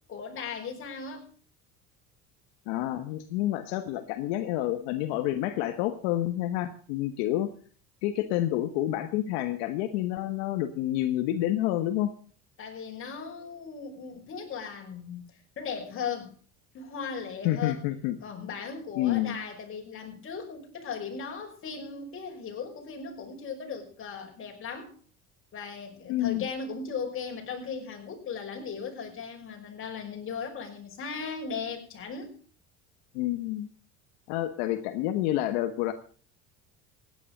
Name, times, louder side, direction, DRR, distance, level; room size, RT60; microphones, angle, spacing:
voice 1, 0.1-1.3 12.6-15.3 15.6-16.3 16.7-17.8 18.2-24.9 25.5-32.3, left 5 dB, 40° left, 2 dB, 5.5 m, -37 dB
voice 2, 2.7-7.5 8.0-12.1 17.4-18.2 19.0-19.4 26.1-26.5 33.1-33.7 34.3-35.9, left 13 dB, 85° left, 8 dB, 1.4 m, -28 dB
16.5 x 10.0 x 6.6 m, 0.43 s
supercardioid pair, 110°, 32 cm